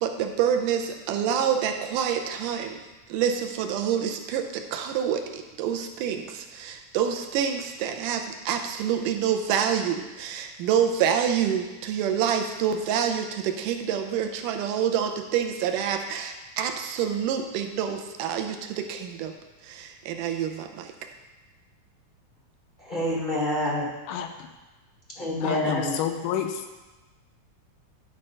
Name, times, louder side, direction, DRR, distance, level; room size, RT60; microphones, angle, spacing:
voice 1, 0.0-2.8 3.1-19.3 19.6-20.9, right 8 dB, 85° right, 5 dB, 2.2 m, -27 dB
voice 2, 22.8-23.9 25.2-26.0, left 1 dB, 50° left, -5 dB, 0.5 m, -27 dB
voice 3, 24.1-24.5 25.4-26.6, left 9 dB, 85° left, 6 dB, 2.1 m, -30 dB
11.0 x 4.4 x 5.4 m, 1.1 s
omnidirectional pair, 3.7 m